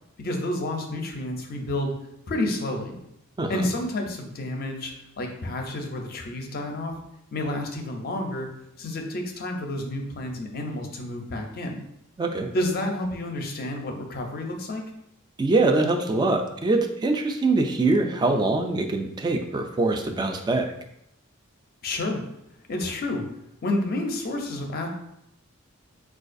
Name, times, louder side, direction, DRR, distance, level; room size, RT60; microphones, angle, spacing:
voice 1, 0.2-1.9 2.3-3.0 3.5-6.9 7.3-8.5 8.8-11.8 12.5-14.8 21.8-22.2 22.7-23.2 23.6-24.9, left 1 dB, 45° left, 3 dB, 0.5 m, -30 dB
voice 2, 12.2-12.5 15.4-20.7, right 2 dB, 20° right, 5 dB, 0.3 m, -23 dB
4.5 x 2.3 x 2.5 m, 0.79 s
head